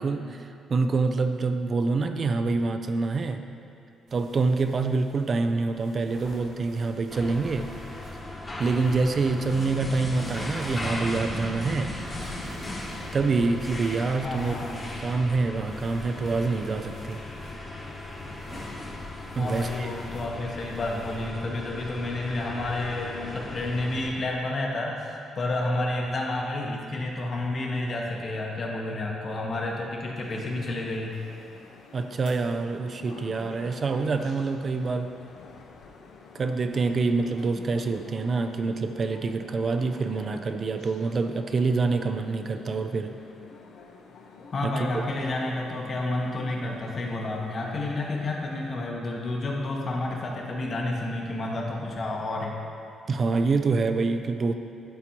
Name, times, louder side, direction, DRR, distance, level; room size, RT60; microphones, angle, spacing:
voice 1, 0.0-3.4 4.1-7.7 8.6-12.0 13.1-17.2 19.3-19.9 31.9-35.1 36.3-43.2 44.6-45.0 53.1-54.5, right 3 dB, 45° right, 7 dB, 0.3 m, -26 dB
sound 1, 4.1-21.3, equal, 80° right, 1.7 m, -50 dB
sound 2, 7.1-24.1, left 1 dB, 25° left, 1.2 m, -37 dB
voice 2, 14.2-14.8 19.4-31.1 44.5-52.5, left 2 dB, 45° left, -1 dB, 1.1 m, -30 dB
sound 3, 30.2-48.7, left 4 dB, 70° left, 0.6 m, -49 dB
11.5 x 4.1 x 2.9 m, 2.6 s
cardioid pair, 90°, 0 cm